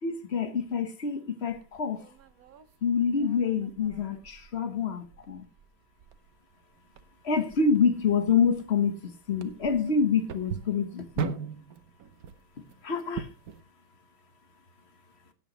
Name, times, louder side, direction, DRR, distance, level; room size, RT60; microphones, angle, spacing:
voice 1, 0.0-2.0 2.8-5.4 7.2-11.3 12.8-13.3, left 5 dB, 40° left, 10 dB, 1.0 m, -27 dB
sound 1, 1.5-13.6, right 7 dB, 60° right, 1.0 m, -42 dB
17.0 x 9.0 x 3.0 m, 0.30 s
omnidirectional pair, 2.4 m